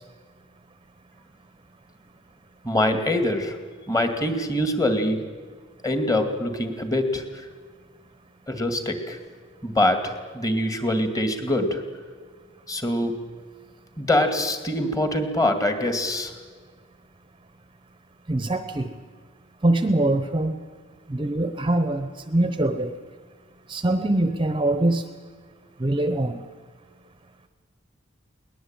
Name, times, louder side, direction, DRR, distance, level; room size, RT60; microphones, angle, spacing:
voice 1, 2.6-3.6 3.9-5.2 5.8-7.5 8.5-9.2 9.6-11.8 12.7-13.1 14.0-16.3, left 1 dB, 15° left, 7 dB, 2.4 m, -24 dB
voice 2, 18.3-18.9 19.6-20.5 21.1-22.9 23.7-25.0 25.8-26.4, right 1 dB, 25° right, 10 dB, 1.0 m, -23 dB
22.0 x 19.5 x 9.0 m, 1.5 s
head